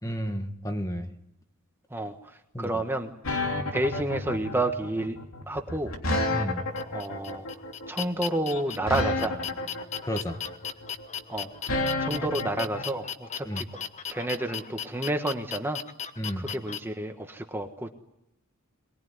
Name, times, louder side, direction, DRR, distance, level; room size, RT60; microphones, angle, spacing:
voice 1, 0.0-1.1 2.5-2.8 6.3-6.7 10.0-10.4 13.4-13.6 16.2-16.4, equal, 15° left, 6 dB, 1.6 m, -32 dB
voice 2, 1.9-3.1 3.7-5.2 5.5-5.9 6.9-7.5 7.9-9.4 11.3-11.5 12.0-13.7 14.1-15.8 16.4-17.9, right 1 dB, 10° right, 5 dB, 1.4 m, -30 dB
sound 1, 3.2-12.8, left 2 dB, 80° left, 3.5 m, -30 dB
sound 2, 6.7-16.8, left 8 dB, 35° left, 1.2 m, -37 dB
23.0 x 21.0 x 9.6 m, 0.84 s
head